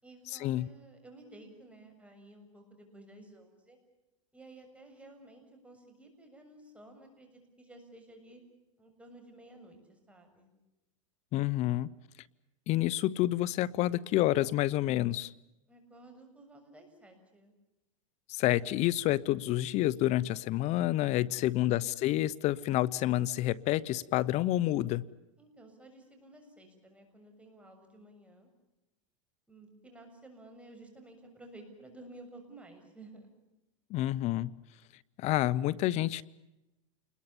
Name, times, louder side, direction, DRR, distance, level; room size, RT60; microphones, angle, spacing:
voice 1, 0.0-3.8 4.3-8.4 8.8-10.5 15.7-17.5 21.6-22.0 25.4-28.5 29.5-33.3, right 2 dB, 5° right, 4 dB, 7.0 m, -54 dB
voice 2, 11.3-11.9 12.7-15.3 18.3-25.0 33.9-34.5 35.2-36.2, left 15 dB, 45° left, 22 dB, 0.8 m, -28 dB
28.5 x 21.5 x 7.3 m, 0.94 s
supercardioid pair, 115°, 16 cm